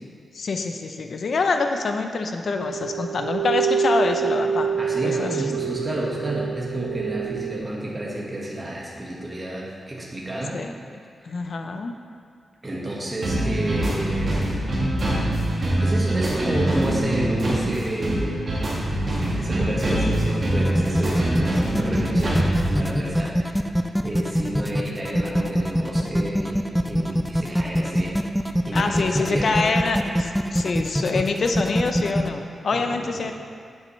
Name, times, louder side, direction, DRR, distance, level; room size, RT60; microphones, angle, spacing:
voice 1, 0.3-4.7 5.0-5.5 10.5-10.7 11.2-11.9 28.7-33.3, left 4 dB, 60° left, 5 dB, 0.6 m, -25 dB
sound 1, 2.5-7.6, right 7 dB, 85° right, 0.9 m, -26 dB
voice 2, 4.8-10.6 12.6-14.4 15.8-18.4 18.7-22.4 22.8-23.7 24.0-28.2 28.6-29.7 32.7-33.0, right 1 dB, 20° right, -4 dB, 1.6 m, -30 dB
sound 2, 13.2-22.8, right 1 dB, 40° right, 1.7 m, -24 dB
sound 3, 20.7-32.3, equal, ahead, 0.4 m, -23 dB
8.4 x 7.6 x 3.2 m, 2.2 s
wide cardioid pair, 110°, 0 cm